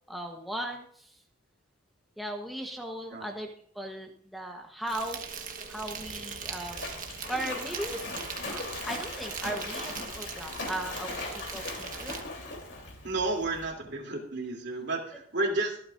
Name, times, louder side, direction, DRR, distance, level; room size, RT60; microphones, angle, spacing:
voice 1, 0.1-1.2 2.2-3.5 3.7-7.0 7.3-8.1 8.5-12.2, right 1 dB, ahead, 1 dB, 1.0 m, -37 dB
Insect, 4.9-12.2, right 6 dB, 40° right, 1.4 m, -41 dB
Splash splatter, 5.8-13.7, left 2 dB, 60° left, 3.4 m, -40 dB
voice 2, 13.0-15.8, right 2 dB, 55° right, 1 dB, 3.0 m, -31 dB
24.5 x 8.7 x 2.6 m, 0.62 s
head